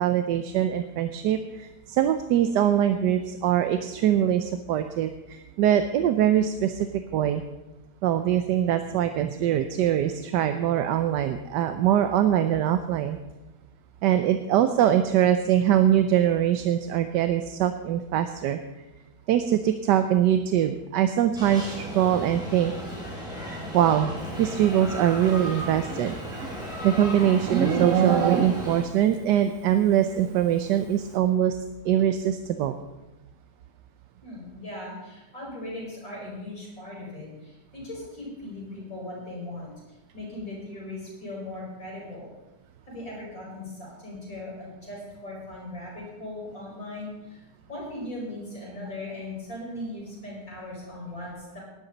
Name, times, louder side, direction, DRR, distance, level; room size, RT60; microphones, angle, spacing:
voice 1, 0.0-6.9 7.1-7.4 8.0-13.2 14.0-18.6 19.3-22.7 23.7-26.2 26.8-31.6 31.8-32.8, right 10 dB, 85° right, 9 dB, 1.3 m, -23 dB
sound 1, 21.3-28.8, equal, ahead, 4.7 m, -35 dB
Livestock farm animals working animals, 25.7-28.9, right 6 dB, 55° right, 1.1 m, -27 dB
voice 2, 34.2-39.7 40.1-42.3 42.9-47.4 47.7-51.6, left 1 dB, 50° left, -4 dB, 5.9 m, -38 dB
17.5 x 11.5 x 4.0 m, 1.0 s
omnidirectional pair, 1.8 m